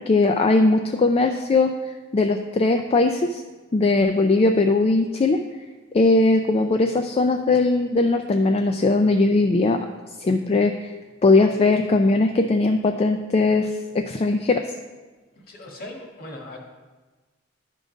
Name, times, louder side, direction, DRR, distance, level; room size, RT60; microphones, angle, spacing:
voice 1, 0.1-1.7 2.1-3.4 3.7-5.4 5.9-9.8 10.2-10.7 11.2-14.7, left 3 dB, 30° left, 5 dB, 0.3 m, -19 dB
voice 2, 15.4-16.6, left 1 dB, 50° left, 0 dB, 1.5 m, -39 dB
11.0 x 3.8 x 5.1 m, 1.3 s
head